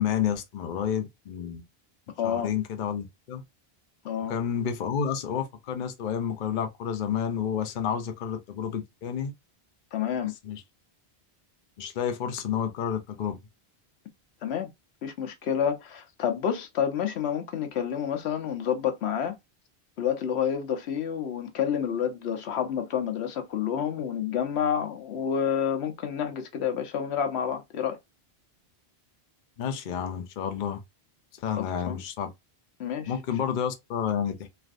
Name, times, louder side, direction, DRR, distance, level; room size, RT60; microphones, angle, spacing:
voice 1, 0.0-1.6 2.2-3.4 4.3-9.3 10.4-10.6 11.8-13.4 29.6-30.8 31.4-32.3 33.1-34.5, left 8 dB, 55° left, 0.7 m, -30 dB
voice 2, 2.2-2.5 4.0-4.3 9.9-10.3 14.4-14.7 15.0-19.3 20.0-28.0 31.6-32.0 32.8-33.1, left 8 dB, 80° left, 0.9 m, -29 dB
3.3 x 2.4 x 2.5 m
omnidirectional pair, 1.1 m